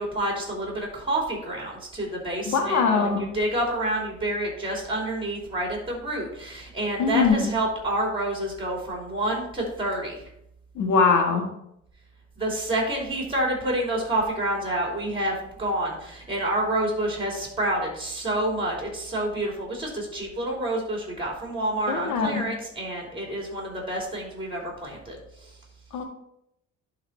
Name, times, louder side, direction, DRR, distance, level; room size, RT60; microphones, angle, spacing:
voice 1, 0.0-3.1 3.3-10.2 12.4-25.2 25.4-25.5, right 1 dB, 15° right, -1 dB, 3.0 m, -28 dB
voice 2, 2.4-3.2 7.0-7.4 10.7-11.5 21.9-22.4 25.9-26.0, left 5 dB, 80° left, 3 dB, 1.7 m, -22 dB
11.0 x 3.9 x 4.3 m, 0.78 s
cardioid pair, 90°, 30 cm